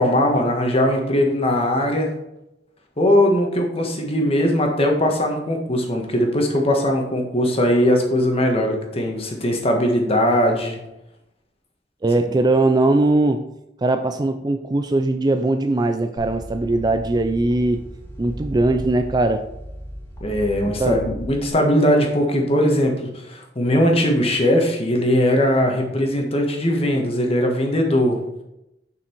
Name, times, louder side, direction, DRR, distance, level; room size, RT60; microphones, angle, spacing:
voice 1, 0.0-2.1 3.0-10.8 20.2-28.2, left 1 dB, 35° left, 2 dB, 1.4 m, -20 dB
voice 2, 12.0-13.4 13.8-17.8 18.2-19.4 20.6-21.0, right 2 dB, 20° right, 7 dB, 0.4 m, -20 dB
sound 1, 16.2-21.5, equal, 15° left, 2.1 m, -35 dB
7.0 x 5.9 x 4.5 m, 0.87 s
head